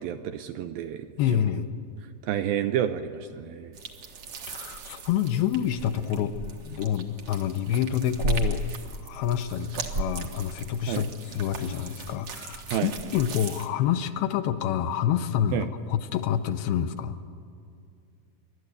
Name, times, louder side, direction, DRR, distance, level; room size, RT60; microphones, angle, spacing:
voice 1, 0.0-1.4 2.3-3.7 10.9-11.0 12.7-12.9 15.5-15.7, right 10 dB, 80° right, 8 dB, 2.2 m, -30 dB
voice 2, 1.2-1.7 4.5-6.3 6.7-8.6 9.0-17.2, left 10 dB, 80° left, 9 dB, 2.5 m, -27 dB
sound 1, 3.7-13.7, right 4 dB, 60° right, 1.6 m, -36 dB
28.0 x 12.0 x 8.1 m, 2.4 s
omnidirectional pair, 4.7 m